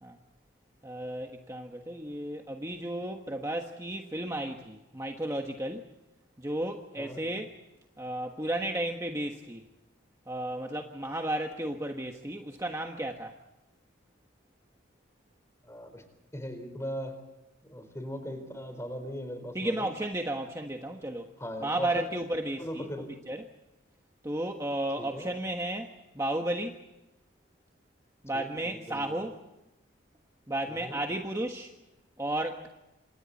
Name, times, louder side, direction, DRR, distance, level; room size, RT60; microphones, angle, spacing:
voice 1, 0.8-5.9 6.4-7.5 8.0-9.6 10.3-13.4 19.5-21.3 21.6-23.4 24.2-26.8 28.2-29.3 30.5-31.7 32.2-32.7, right 1 dB, 15° right, 3 dB, 1.4 m, -33 dB
voice 2, 15.6-16.0 16.3-17.2 17.6-19.9 21.4-22.0 22.6-23.1 25.0-25.3 28.3-29.2 30.7-31.0, equal, 15° left, 8 dB, 4.2 m, -39 dB
28.5 x 27.0 x 4.2 m, 0.98 s
head